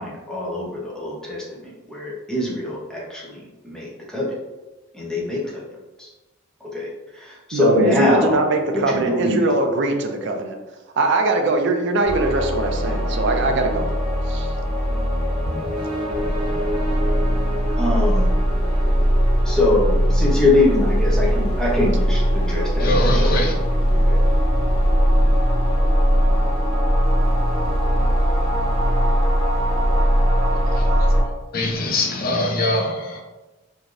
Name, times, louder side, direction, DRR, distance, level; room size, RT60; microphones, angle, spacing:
voice 1, 0.0-4.4 4.9-5.6 6.0-6.1 6.7-6.9 7.1-8.4 8.7-9.5 17.8-18.3 19.4-23.4 23.9-24.2, left 2 dB, 5° left, -5 dB, 0.6 m, -23 dB
voice 2, 7.5-10.5 11.0-13.9 14.3-14.5, right 2 dB, 60° right, 4 dB, 0.4 m, -21 dB
sound 1, 12.0-31.2, equal, 25° right, 0.9 m, -20 dB
voice 3, 22.8-23.5 31.5-33.2, left 1 dB, 45° left, 1 dB, 0.5 m, -22 dB
3.1 x 2.6 x 2.4 m, 1.1 s
head